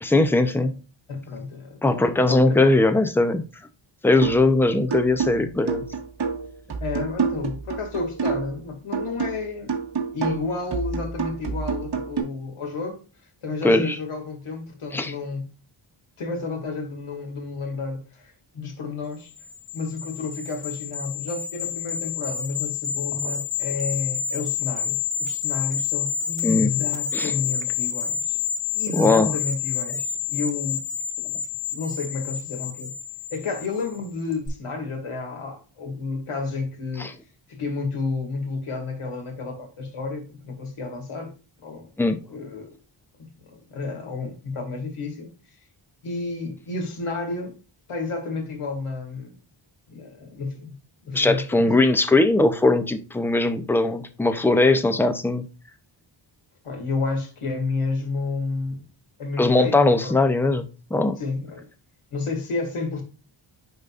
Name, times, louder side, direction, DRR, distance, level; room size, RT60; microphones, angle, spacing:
voice 1, 0.0-0.7 1.8-3.4 4.0-5.8 13.6-14.0 14.9-15.1 26.4-26.7 27.1-27.3 28.9-29.3 37.0-37.1 42.0-42.2 51.1-55.4 59.4-60.6 60.9-61.2, left 2 dB, 5° left, 0.5 m, -20 dB
voice 2, 1.1-2.7 6.8-9.7 10.1-13.0 13.4-15.5 16.2-19.3 19.7-28.4 28.7-30.8 31.2-31.4 31.7-32.9 33.3-37.1 37.5-41.3 41.6-41.9 42.3-42.7 43.4-45.3 46.0-47.5 47.9-49.3 49.9-50.7 51.0-51.7 56.6-58.8 59.2-60.1 61.2-61.7 62.1-63.0, left 3 dB, 85° left, 2.2 m, -31 dB
sound 1, 4.2-4.5 4.9-8.6 8.9-12.2, right 5 dB, 55° right, 1.8 m, -28 dB
sound 2, 19.4-34.0 34.3-34.5, left 8 dB, 25° left, 1.4 m, -29 dB
10.5 x 4.0 x 2.4 m
wide cardioid pair, 155°, 49 cm